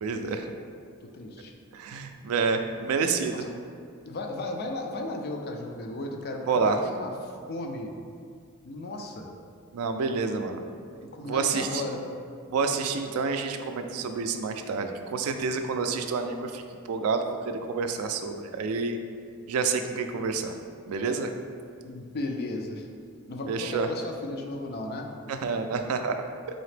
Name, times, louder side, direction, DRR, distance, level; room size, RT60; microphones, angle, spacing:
voice 1, 0.0-0.5 1.7-3.4 6.5-6.8 9.7-10.7 11.2-11.8 12.5-19.0 19.5-20.5 20.9-21.3 23.5-23.9 25.3-26.2, right 4 dB, 85° right, 7 dB, 0.3 m, -28 dB
voice 2, 1.1-1.5 3.3-3.5 4.0-7.9 8.6-9.3 11.1-12.0 21.8-22.9 23.3-25.1, left 2 dB, 50° left, 2 dB, 0.4 m, -35 dB
4.0 x 2.8 x 3.3 m, 2.2 s
head